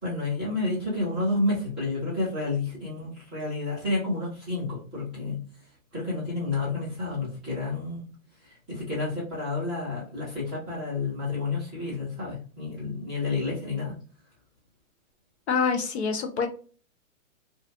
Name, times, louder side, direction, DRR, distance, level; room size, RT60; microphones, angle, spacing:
voice 1, 0.0-5.4 5.9-8.1 8.4-14.0, left 2 dB, ahead, -17 dB, 0.5 m, -30 dB
voice 2, 15.5-16.5, left 5 dB, 55° left, 6 dB, 0.5 m, -26 dB
2.3 x 2.2 x 2.6 m, 0.39 s
hypercardioid pair, 165°, 41 cm